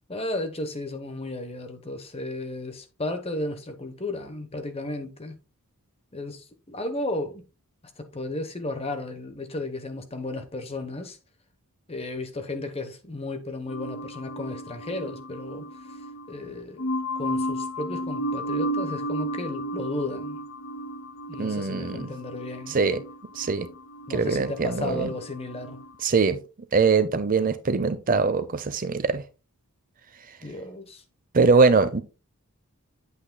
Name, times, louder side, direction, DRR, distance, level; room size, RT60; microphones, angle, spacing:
voice 1, 0.1-5.4 6.1-7.4 8.0-11.2 11.9-15.7 16.3-16.9 17.2-20.4 21.3-22.8 24.1-25.8 30.4-31.0, left 2 dB, 25° left, 1.0 m, -34 dB
sound 1, 13.7-25.9, equal, 60° left, 0.7 m, -34 dB
voice 2, 21.4-22.1 22.7-23.0 23.3-23.7 24.1-25.1 26.0-26.4 26.7-29.2 31.3-32.0, right 4 dB, 40° right, 0.6 m, -22 dB
8.4 x 8.1 x 2.2 m
head